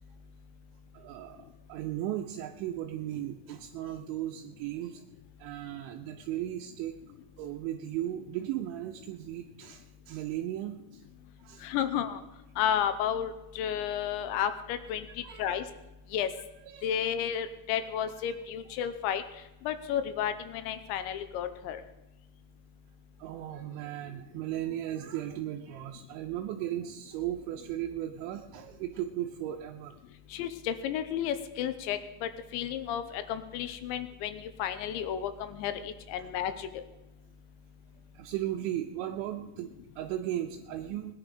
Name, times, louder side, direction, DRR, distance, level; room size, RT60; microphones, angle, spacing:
voice 1, 0.9-5.0 5.4-7.0 7.4-11.0 11.4-11.7 15.2-15.6 16.6-16.9 23.2-30.0 36.2-36.3 38.1-41.1, right 13 dB, 80° right, 3 dB, 3.0 m, -36 dB
voice 2, 11.6-12.2 12.6-15.1 15.4-15.6 16.1-16.3 16.8-19.2 19.6-21.8 30.3-36.7, left 9 dB, 80° left, 10 dB, 3.0 m, -32 dB
19.5 x 10.0 x 5.0 m, 0.97 s
omnidirectional pair, 5.5 m